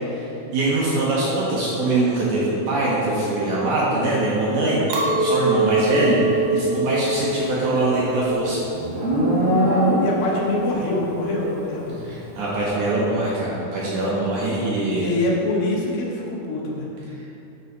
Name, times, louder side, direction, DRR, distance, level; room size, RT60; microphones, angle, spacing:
voice 1, 0.5-6.2 6.5-8.6 12.0-15.1, right 2 dB, 65° right, -6 dB, 2.1 m, -22 dB
Chink clink, 4.9-10.3, right 2 dB, 85° right, 3.2 m, -25 dB
voice 2, 5.7-6.0 10.0-12.0 14.5-14.6 14.9-16.9, left 2 dB, 75° left, -3 dB, 2.8 m, -25 dB
Livestock farm animals working animals, 7.2-10.4, equal, 45° right, 2.2 m, -22 dB
6.9 x 5.6 x 5.2 m, 2.9 s
omnidirectional pair, 4.5 m